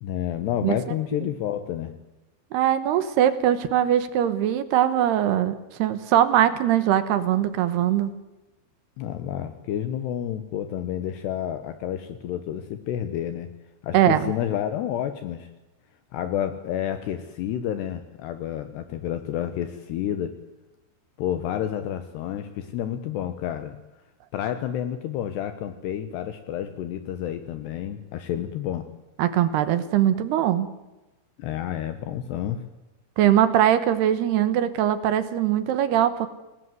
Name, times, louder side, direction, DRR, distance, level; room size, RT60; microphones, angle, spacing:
voice 1, 0.0-1.9 9.0-13.5 13.8-15.5 16.1-20.3 21.2-23.8 24.3-28.9 31.4-32.6, left 10 dB, 75° left, 9 dB, 3.2 m, -30 dB
voice 2, 2.5-8.1 13.9-14.3 29.2-30.7 33.2-36.3, right 11 dB, 70° right, 12 dB, 3.0 m, -21 dB
29.0 x 19.5 x 7.9 m, 1.0 s
omnidirectional pair, 5.2 m